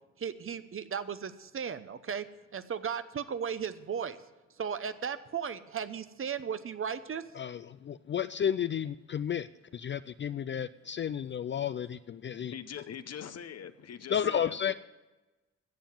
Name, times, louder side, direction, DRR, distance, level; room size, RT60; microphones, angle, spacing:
voice 1, 0.2-2.3 2.5-4.2 4.5-7.3, right 7 dB, 45° right, 0.8 m, -36 dB
voice 2, 7.9-9.5 9.7-12.5 14.1-14.7, left 8 dB, 40° left, 0.4 m, -32 dB
voice 3, 12.5-14.7, left 8 dB, 60° left, 0.8 m, -43 dB
14.0 x 7.6 x 7.3 m
cardioid pair, 80°, 29 cm